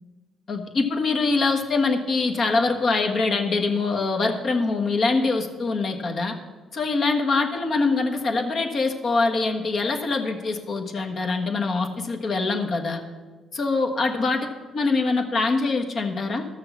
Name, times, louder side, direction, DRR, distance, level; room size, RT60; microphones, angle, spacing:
voice 1, 0.5-6.4 6.7-13.0 13.5-14.5 14.7-16.5, left 3 dB, 50° left, 3 dB, 1.4 m, -24 dB
13.0 x 6.6 x 7.2 m, 1.4 s
cardioid pair, 90°, 0 cm